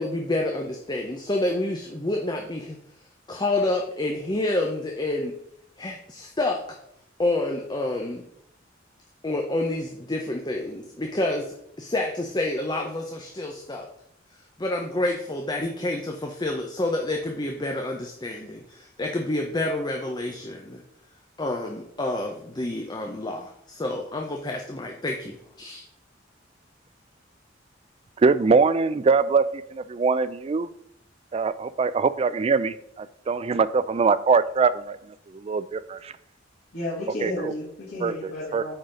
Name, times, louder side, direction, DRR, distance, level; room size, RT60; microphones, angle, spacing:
voice 1, 0.0-2.8 3.3-5.3 5.8-6.6 7.2-8.2 9.2-13.9 14.6-20.8 21.4-25.8, left 2 dB, 20° left, 2 dB, 0.7 m, -28 dB
voice 2, 28.2-29.4 29.7-30.7 31.3-35.0 35.4-36.1 37.2-37.3 38.0-38.1 38.5-38.6, right 4 dB, 30° right, 15 dB, 0.3 m, -22 dB
voice 3, 36.7-38.7, left 1 dB, 60° left, -9 dB, 2.4 m, -32 dB
8.7 x 4.0 x 5.2 m, 0.74 s
head